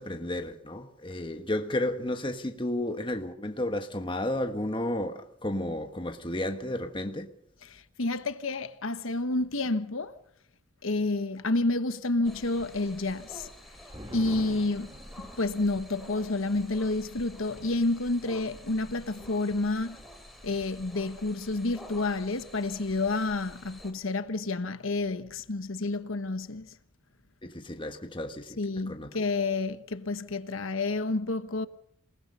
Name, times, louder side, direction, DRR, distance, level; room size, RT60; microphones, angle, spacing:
voice 1, 0.0-7.3 27.4-28.6 28.9-29.1, left 1 dB, 25° left, 1.4 m, -32 dB
voice 2, 7.6-10.2 10.8-13.5 14.1-14.9 15.2-20.0 20.4-26.8 28.6-31.7, left 2 dB, 70° left, 1.1 m, -29 dB
sound 1, 12.2-23.9, equal, ahead, 3.4 m, -49 dB
sound 2, 13.3-20.3 20.6-20.7 21.0-21.5, equal, 20° right, 2.8 m, -49 dB
28.0 x 20.0 x 5.5 m
head